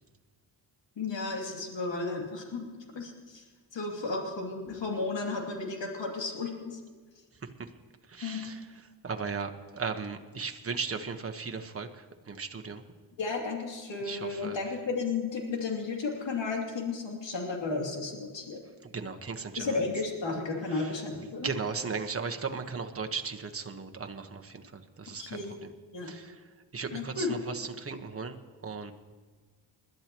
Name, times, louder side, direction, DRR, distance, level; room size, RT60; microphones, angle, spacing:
voice 1, 1.0-2.7 2.9-3.4 3.7-6.8 8.2-8.4 13.2-18.6 19.6-21.5 25.2-25.5 25.9-26.1 26.9-27.3, left 3 dB, 70° left, 0 dB, 3.1 m, -33 dB
voice 2, 8.1-8.6 9.0-12.8 14.0-14.6 18.8-19.8 20.7-20.9 21.4-25.7 26.0-26.4 26.7-28.4 28.6-28.9, right 5 dB, 30° right, 5 dB, 1.3 m, -36 dB
21.0 x 12.0 x 3.1 m, 1.5 s
cardioid pair, 65°, 46 cm